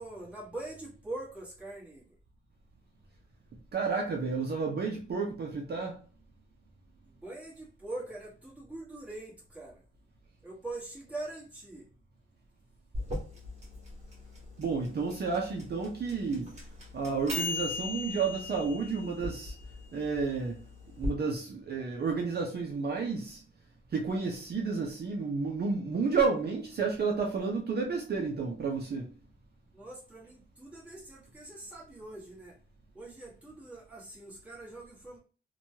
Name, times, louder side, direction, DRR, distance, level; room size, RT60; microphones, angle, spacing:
voice 1, 0.0-2.0 7.0-9.8 10.4-11.9 29.7-32.6 32.9-35.2, right 2 dB, 5° right, 1.2 m, -43 dB
voice 2, 3.7-6.0 14.6-16.5 16.9-19.5 19.9-20.6 21.0-23.4 23.9-29.1, right 4 dB, 50° right, 0.5 m, -31 dB
sound 1, 12.9-21.1, left 3 dB, 30° right, 1.4 m, -38 dB
2.9 x 2.2 x 2.7 m
wide cardioid pair, 155°, 21 cm